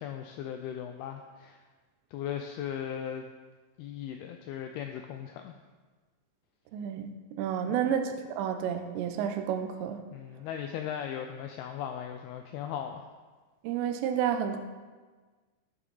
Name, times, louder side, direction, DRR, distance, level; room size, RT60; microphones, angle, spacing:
voice 1, 0.0-1.6 2.1-3.3 3.8-5.5 7.7-7.9 10.1-13.0, left 9 dB, 85° left, 5 dB, 2.2 m, -38 dB
voice 2, 6.7-10.0 13.6-14.6, right 8 dB, 90° right, 7 dB, 2.9 m, -31 dB
12.0 x 6.7 x 3.9 m, 1.4 s
omnidirectional pair, 5.0 m